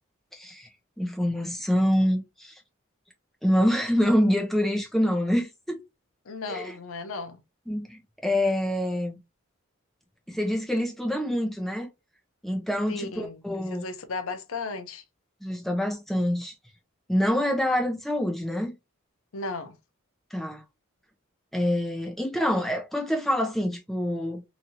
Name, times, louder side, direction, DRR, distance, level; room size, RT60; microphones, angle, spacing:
voice 1, 0.3-0.7 1.0-2.6 3.4-5.8 6.5-6.8 7.7-9.2 10.3-11.9 12.4-13.8 15.4-16.5 17.1-18.7 20.3-20.6 21.5-24.4, equal, ahead, 0.8 m, -26 dB
voice 2, 6.3-7.4 12.9-13.4 13.7-15.0 19.3-19.8, left 3 dB, 75° left, 0.6 m, -35 dB
3.0 x 2.6 x 2.6 m
head